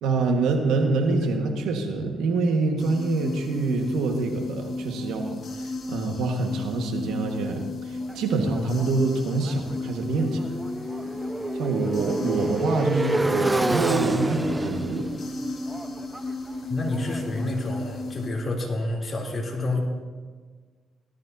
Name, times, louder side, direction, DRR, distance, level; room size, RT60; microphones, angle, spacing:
voice 1, 0.0-10.4 11.5-15.1, right 3 dB, 85° right, 3 dB, 1.6 m, -26 dB
sound 1, 2.8-18.3, left 3 dB, 50° left, 2.7 m, -34 dB
Motorcycle, 8.1-17.9, right 2 dB, 15° right, 0.5 m, -30 dB
voice 2, 16.7-19.8, left 2 dB, 30° left, -2 dB, 3.2 m, -29 dB
18.5 x 13.0 x 2.8 m, 1.5 s
cardioid pair, 90°, 0 cm